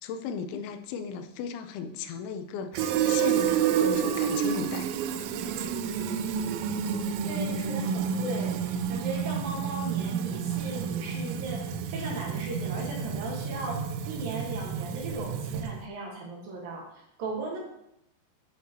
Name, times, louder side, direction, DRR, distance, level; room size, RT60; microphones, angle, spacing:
voice 1, 0.0-4.9, left 6 dB, 90° left, 8 dB, 3.1 m, -36 dB
Fill (with liquid), 2.7-15.9, right 8 dB, 90° right, 2.9 m, -29 dB
voice 2, 7.2-17.6, right 2 dB, 60° right, -1 dB, 3.0 m, -37 dB
10.5 x 8.3 x 2.9 m, 0.79 s
omnidirectional pair, 5.1 m